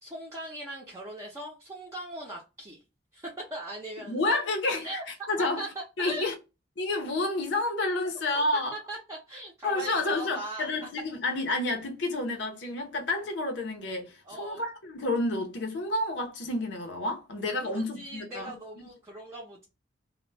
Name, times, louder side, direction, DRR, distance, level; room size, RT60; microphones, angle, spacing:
voice 1, 0.0-2.8 3.1-4.5 4.8-5.0 5.6-5.7 6.1-6.3 8.7-10.7 14.3-14.6 17.6-19.6, right 1 dB, 15° right, 0.5 m, -40 dB
voice 2, 4.1-5.6 6.0-6.3 6.8-8.7 9.6-18.5, left 2 dB, 80° left, 0.6 m, -30 dB
2.1 x 2.0 x 3.2 m
head